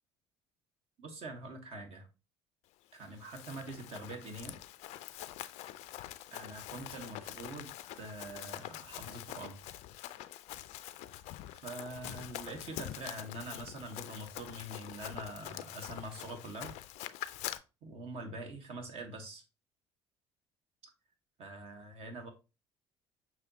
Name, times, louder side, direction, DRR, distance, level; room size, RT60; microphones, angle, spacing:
voice 1, 1.0-2.1 2.9-4.5 6.3-7.7 8.0-9.6 10.7-10.9 11.6-16.7 17.8-19.4 21.4-22.3, right 2 dB, 50° right, 1.2 m, -44 dB
Run, 3.0-17.6, left 14 dB, 60° left, 0.4 m, -45 dB
6.4 x 2.9 x 2.7 m
figure-of-eight pair, 55°, 13 cm